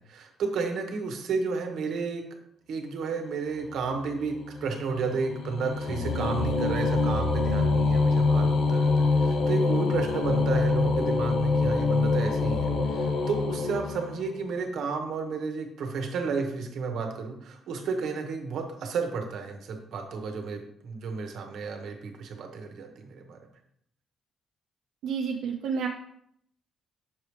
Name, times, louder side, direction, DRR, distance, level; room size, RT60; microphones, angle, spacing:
voice 1, 0.0-2.2 2.7-4.3 4.6-23.4, right 5 dB, 60° right, 4 dB, 1.1 m, -32 dB
sound 1, 3.6-14.5, left 3 dB, 60° left, 0.6 m, -25 dB
voice 2, 25.0-25.9, right 6 dB, 80° right, 1 dB, 0.5 m, -29 dB
6.1 x 4.8 x 3.2 m, 0.70 s
cardioid pair, 150°, 0 cm